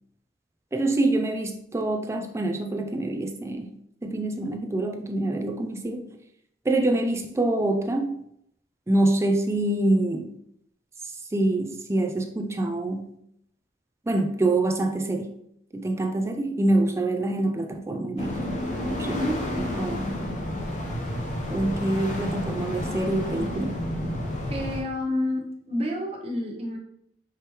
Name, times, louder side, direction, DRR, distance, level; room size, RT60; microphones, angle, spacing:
voice 1, 0.7-3.8 4.0-6.0 6.7-8.2 8.9-10.3 11.3-13.1 14.1-15.3 15.7-18.6 18.8-19.2 19.8-20.2 21.5-23.8, right 2 dB, 15° right, 4 dB, 0.3 m, -25 dB
sound 1, 18.2-24.8, left 1 dB, 40° left, 0.7 m, -30 dB
voice 2, 19.1-19.5 24.5-26.8, left 1 dB, 35° right, -1 dB, 0.7 m, -29 dB
4.9 x 3.0 x 3.0 m, 0.72 s
head